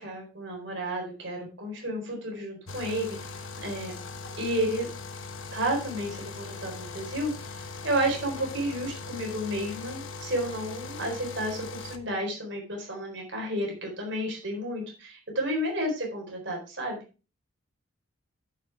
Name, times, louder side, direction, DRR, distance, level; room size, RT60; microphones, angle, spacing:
voice 1, 0.0-4.0 4.4-4.9 5.5-17.0, right 1 dB, 55° right, 0 dB, 4.2 m, -32 dB
sound 1, 2.7-12.0, left 4 dB, 65° left, 1.2 m, -40 dB
12.0 x 6.0 x 4.7 m, 0.33 s
head